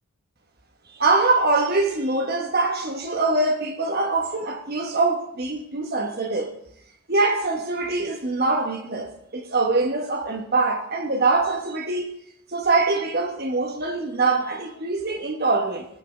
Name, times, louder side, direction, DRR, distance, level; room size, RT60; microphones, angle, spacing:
voice 1, 0.9-6.5 7.1-12.1 12.5-15.9, right 3 dB, 45° right, 1.3 m, -23 dB
15.0 x 6.8 x 5.0 m
head